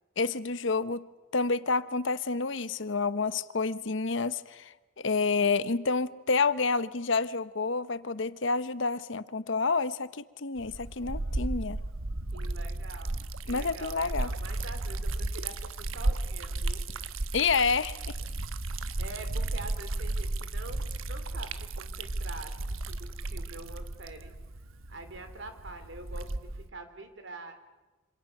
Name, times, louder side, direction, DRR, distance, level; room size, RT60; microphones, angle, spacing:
voice 1, 0.2-1.1 1.3-11.8 13.5-14.3 17.3-18.1, left 4 dB, 60° left, 0.9 m, -29 dB
Liquid, 10.6-26.7, right 2 dB, 75° right, 1.1 m, -34 dB
voice 2, 12.3-16.9 19.0-24.3 24.9-26.3 26.7-27.5, right 2 dB, 60° right, 3.3 m, -45 dB
27.0 x 26.0 x 6.6 m
head